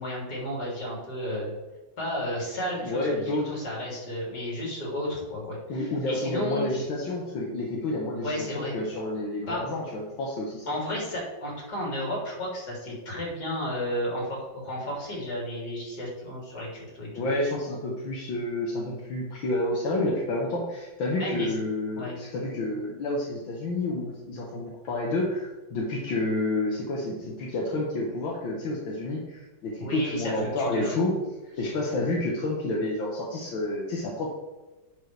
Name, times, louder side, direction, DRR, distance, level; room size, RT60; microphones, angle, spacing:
voice 1, 0.0-1.5 2.0-6.7 8.2-8.8 9.5-9.6 10.7-17.3 21.2-21.6 22.0-22.2 29.8-31.1, equal, 55° left, -4 dB, 3.7 m, -33 dB
voice 2, 2.8-3.5 5.7-10.7 17.1-31.1 31.6-34.3, left 2 dB, 80° left, -4 dB, 2.0 m, -29 dB
10.5 x 5.5 x 3.4 m, 1.1 s
omnidirectional pair, 2.1 m